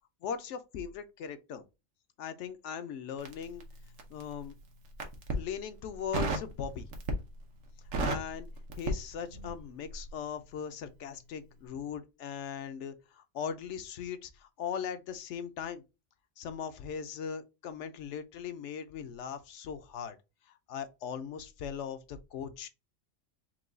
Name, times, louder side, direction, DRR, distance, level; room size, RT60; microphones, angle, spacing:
voice 1, 0.2-1.6 2.2-3.6 4.1-4.5 5.3-6.9 8.0-8.5 8.8-15.8 16.4-20.2 20.7-22.7, left 7 dB, 70° left, 0.9 m, -39 dB
Crackle, 3.2-4.3 4.9-5.5 6.1-6.5 6.9-7.4 7.7-9.6 9.9-10.1, right 2 dB, 85° right, 1.3 m, -33 dB
4.6 x 2.3 x 3.8 m
omnidirectional pair, 1.3 m